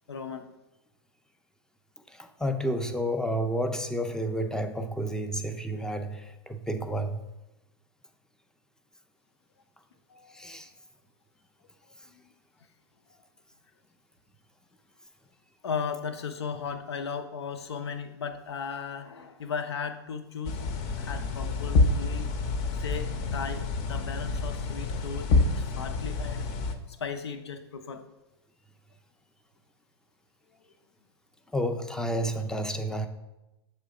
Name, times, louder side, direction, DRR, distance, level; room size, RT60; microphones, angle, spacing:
voice 1, 0.1-0.5 10.1-10.6 12.1-12.2 15.6-20.6 21.0-22.3 22.8-26.5 26.9-28.1, left 6 dB, 85° left, 9 dB, 0.6 m, -36 dB
voice 2, 2.1-7.2 10.3-10.7 31.5-33.1, equal, 5° left, 7 dB, 0.5 m, -30 dB
sound 1, 20.4-26.7, left 3 dB, 45° left, 0.7 m, -28 dB
7.3 x 3.2 x 4.8 m, 0.99 s
hypercardioid pair, 105°, 13 cm